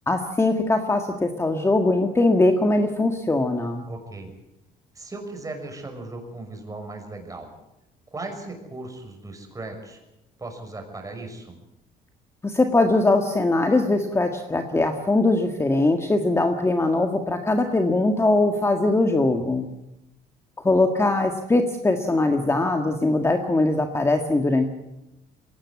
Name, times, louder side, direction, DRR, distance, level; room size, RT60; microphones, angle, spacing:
voice 1, 0.1-3.8 12.4-19.7 20.6-24.7, left 2 dB, 15° left, 5 dB, 1.7 m, -21 dB
voice 2, 3.9-4.3 4.9-7.5 8.1-10.0 10.4-11.6, right 2 dB, 20° right, 4 dB, 6.2 m, -37 dB
22.0 x 17.5 x 8.5 m, 0.91 s
cardioid pair, 110°, 17 cm